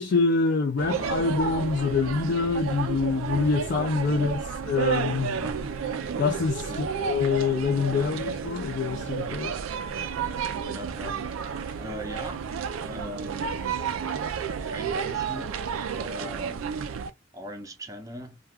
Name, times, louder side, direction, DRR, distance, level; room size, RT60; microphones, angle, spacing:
voice 1, 0.0-4.4 4.7-5.4 6.2-6.7 7.0-9.5, left 4 dB, 55° left, 0.4 m, -25 dB
sound 1, 0.8-17.1, right 6 dB, 90° right, 0.4 m, -31 dB
voice 2, 6.7-7.2 7.9-8.3 10.2-12.5 12.8-13.6 14.6-15.5 15.9-16.6 17.3-18.4, equal, 15° right, 0.5 m, -41 dB
2.3 x 2.2 x 3.3 m
head